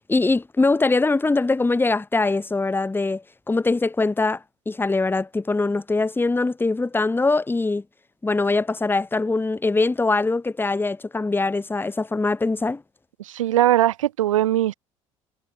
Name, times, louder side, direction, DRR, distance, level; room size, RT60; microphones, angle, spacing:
voice 1, 0.0-7.8 8.2-12.8, left 3 dB, 15° left, 1.2 m, -22 dB
voice 2, 13.2-14.7, right 13 dB, 75° right, 1.3 m, -20 dB
figure-of-eight pair, 60°, 17 cm